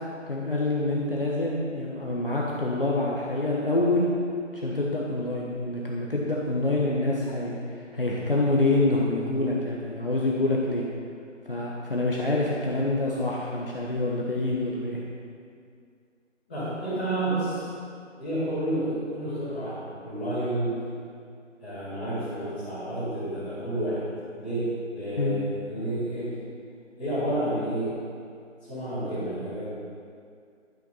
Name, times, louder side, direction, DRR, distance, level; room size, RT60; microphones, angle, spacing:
voice 1, 0.3-4.1 4.5-7.6 7.9-10.8 11.5-15.0 25.2-25.4, left 2 dB, 45° left, -4 dB, 1.3 m, -26 dB
voice 2, 16.5-17.7 18.2-20.9 21.6-24.0 24.4-26.4 27.0-27.9 28.6-29.7, right 1 dB, 5° left, -18 dB, 2.8 m, -30 dB
12.0 x 6.5 x 5.6 m, 2.3 s
figure-of-eight pair, 170°, 38 cm